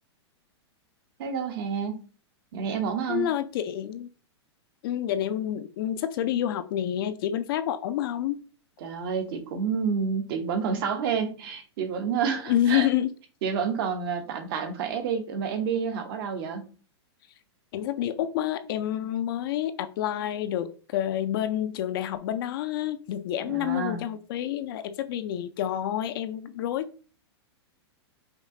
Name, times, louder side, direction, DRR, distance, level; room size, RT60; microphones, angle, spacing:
voice 1, 1.2-2.0 2.5-3.3 8.8-12.9 13.4-16.7 23.5-24.0, right 6 dB, 55° right, 0.9 m, -29 dB
voice 2, 3.1-4.1 4.8-8.4 12.5-13.1 17.7-27.0, left 11 dB, 55° left, 0.4 m, -28 dB
5.1 x 2.4 x 2.7 m
hypercardioid pair, 135°, 14 cm